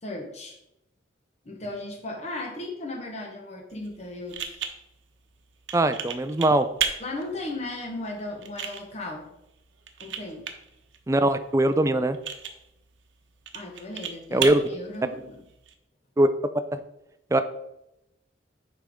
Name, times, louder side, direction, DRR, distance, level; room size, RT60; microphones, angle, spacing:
voice 1, 0.0-0.6 1.4-4.4 7.0-9.3 10.0-10.4 13.5-15.4, left 2 dB, 35° left, 1 dB, 1.0 m, -36 dB
sound 1, 3.7-15.7, right 7 dB, 80° right, 0.8 m, -37 dB
voice 2, 5.7-6.7 11.1-12.2 14.3-14.6 16.2-16.3 16.7-16.8 17.3-17.4, right 1 dB, 15° right, 10 dB, 0.4 m, -21 dB
7.4 x 5.1 x 3.5 m, 0.84 s
head